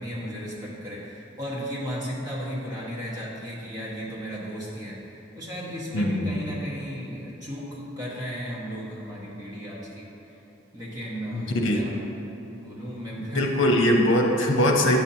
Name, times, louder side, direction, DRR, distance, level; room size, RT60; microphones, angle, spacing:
voice 1, 0.0-10.1 10.7-12.0 12.5-13.4, equal, 20° right, -7 dB, 1.2 m, -35 dB
voice 2, 5.9-6.3 11.3-11.8 13.3-15.0, left 1 dB, 80° left, 2 dB, 0.7 m, -21 dB
8.8 x 5.8 x 2.8 m, 3.0 s
head